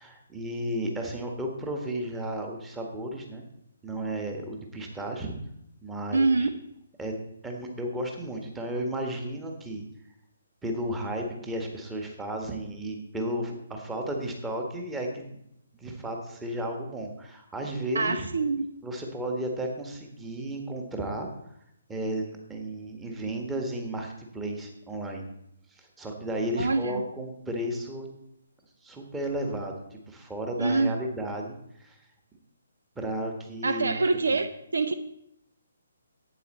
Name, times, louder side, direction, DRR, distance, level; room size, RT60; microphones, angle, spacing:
voice 1, 0.0-3.4 3.8-5.3 5.8-6.5 7.0-7.1 7.4-9.8 10.6-15.4 15.7-18.3 18.8-21.3 21.9-25.3 25.7-28.1 28.8-32.0 32.9-34.4, right 1 dB, 10° right, 2 dB, 1.5 m, -33 dB
voice 2, 6.1-6.6 17.9-18.7 26.6-27.0 30.6-31.0 33.6-34.9, right 3 dB, 60° right, 12 dB, 0.6 m, -25 dB
12.0 x 8.8 x 4.2 m, 0.79 s
figure-of-eight pair, 135°, 0 cm